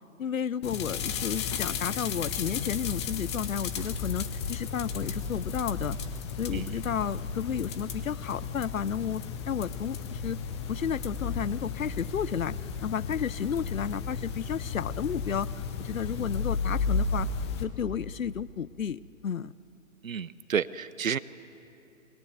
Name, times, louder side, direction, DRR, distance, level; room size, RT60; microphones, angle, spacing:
voice 1, 0.2-6.0 6.4-10.4 10.7-12.5 12.8-17.3 17.6-19.5, left 8 dB, 70° left, 20 dB, 0.7 m, -32 dB
sound 1, 0.6-17.6, left 5 dB, 20° left, 0.9 m, -34 dB
voice 2, 20.0-21.2, right 7 dB, 70° right, 17 dB, 0.8 m, -30 dB
28.0 x 21.5 x 8.1 m, 2.8 s
figure-of-eight pair, 130°, 42 cm